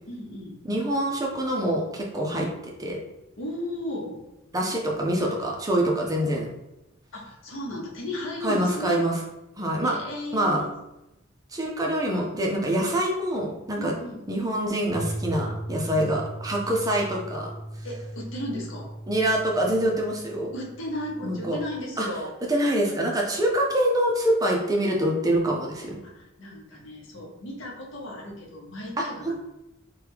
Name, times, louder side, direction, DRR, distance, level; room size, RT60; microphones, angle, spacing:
voice 1, 0.1-0.6 3.4-4.2 7.1-9.0 9.8-10.7 13.8-14.2 16.0-16.1 17.7-18.9 20.5-22.3 26.0-29.3, left 1 dB, 85° left, -2 dB, 0.8 m, -35 dB
voice 2, 0.6-3.0 4.5-6.5 8.4-9.2 9.6-10.0 10.3-10.6 11.5-13.9 14.3-17.5 19.1-20.5 21.2-21.6 22.0-22.1 22.5-26.0 29.0-29.3, right 1 dB, 20° right, -1 dB, 0.5 m, -25 dB
sound 1, 14.9-21.8, right 1 dB, 60° right, 0.6 m, -38 dB
3.1 x 2.3 x 3.4 m, 0.92 s
head